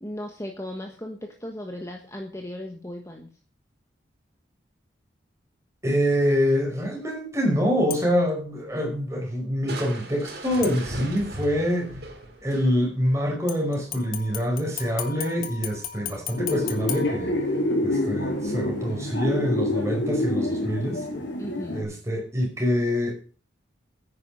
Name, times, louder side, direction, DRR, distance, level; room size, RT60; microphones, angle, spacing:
voice 1, 0.0-3.3 21.4-21.9, left 1 dB, 15° left, 3 dB, 1.4 m, -36 dB
voice 2, 5.8-12.0 12.4-17.3 17.8-21.0 21.7-23.1, equal, 15° right, 0 dB, 5.1 m, -25 dB
sound 1, 7.9-8.3 10.6-11.3 13.5-17.9 18.3-18.4, left 9 dB, 50° left, 1.7 m, -37 dB
Crushing, 9.7-13.1, right 1 dB, 55° right, 3.0 m, -37 dB
sound 2, 16.4-21.8, left 1 dB, 65° left, 3.6 m, -27 dB
10.5 x 9.8 x 6.5 m, 0.39 s
head